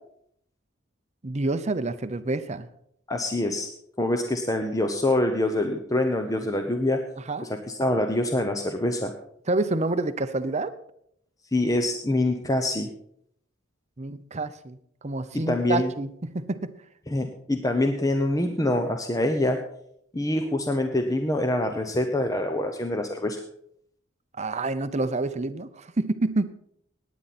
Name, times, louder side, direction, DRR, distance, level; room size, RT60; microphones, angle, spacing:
voice 1, 1.2-2.7 7.2-7.5 9.5-10.7 14.0-16.8 24.4-26.5, right 2 dB, 35° right, 12 dB, 0.7 m, -28 dB
voice 2, 3.1-3.7 4.0-7.0 7.7-9.1 11.5-12.9 15.5-15.9 17.1-19.6 20.1-23.4, left 1 dB, 15° left, 5 dB, 0.8 m, -25 dB
18.5 x 9.2 x 4.3 m, 0.71 s
head